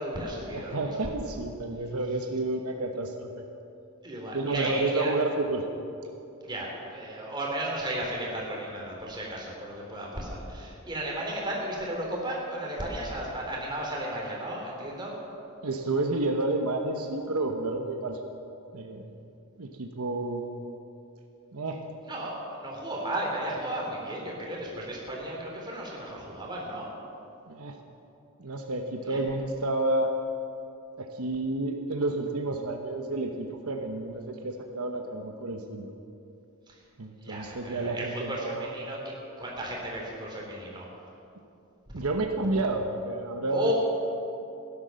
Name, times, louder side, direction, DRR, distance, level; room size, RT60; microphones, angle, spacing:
voice 1, 0.0-1.0 4.0-5.1 6.4-15.2 22.1-26.9 29.0-29.2 36.7-36.8 37.2-39.0 39.4-40.9 41.9-42.0 43.5-43.7, right 1 dB, 20° right, -3 dB, 3.4 m, -34 dB
voice 2, 0.5-3.3 4.3-5.6 15.6-18.2 18.7-19.1 19.6-20.5 21.5-21.9 27.5-27.8 28.4-30.1 31.0-35.9 37.0-38.7 41.9-43.7, right 2 dB, 80° right, 3 dB, 1.1 m, -30 dB
16.5 x 11.0 x 6.5 m, 2.7 s
head